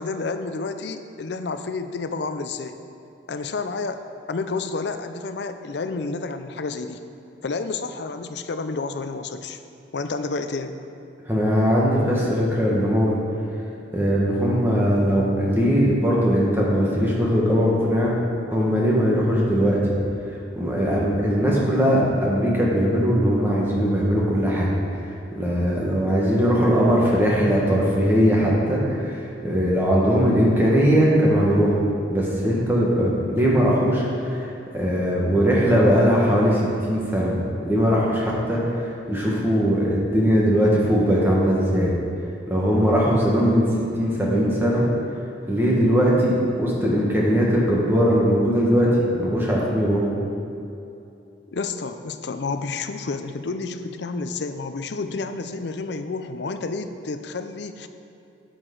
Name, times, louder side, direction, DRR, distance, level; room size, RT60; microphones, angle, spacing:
voice 1, 0.0-2.8 3.3-4.0 4.3-7.0 7.4-9.6 9.9-10.8 51.5-57.9, left 3 dB, 60° left, 9 dB, 0.5 m, -30 dB
voice 2, 11.3-13.2 13.9-18.1 18.5-19.8 20.6-24.7 25.4-31.7 32.1-34.5 34.7-37.4 37.6-41.9 42.5-43.7 44.0-44.8 45.5-48.9 49.2-50.0, equal, 10° right, -5 dB, 1.4 m, -20 dB
8.8 x 8.1 x 3.9 m, 2.7 s
head